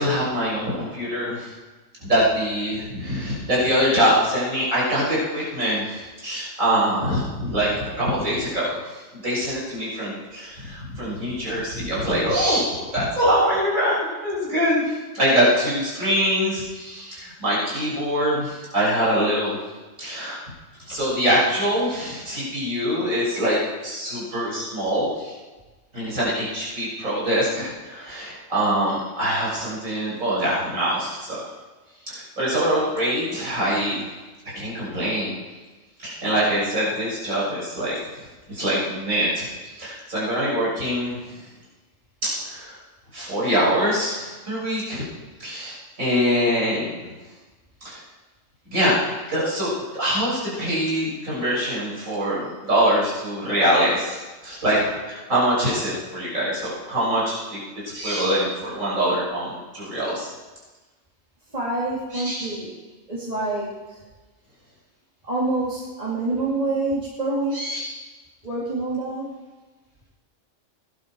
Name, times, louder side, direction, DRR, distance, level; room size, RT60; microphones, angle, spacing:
voice 1, 0.0-1.5 2.1-19.6 20.0-20.4 20.9-25.4 25.9-31.4 32.1-34.0 34.6-35.3 36.0-37.9 38.5-39.4 39.8-41.2 42.2-42.7 43.1-45.0 45.4-47.1 47.8-48.0 48.7-54.2 54.4-57.6 57.9-60.3 62.1-62.6 67.5-67.8, equal, 85° right, -7 dB, 6.9 m, -24 dB
voice 2, 61.5-62.7 63.1-64.0 65.3-67.7 68.4-69.3, right 2 dB, 30° right, -7 dB, 2.7 m, -26 dB
18.5 x 11.5 x 4.7 m, 1.2 s
omnidirectional pair, 1.4 m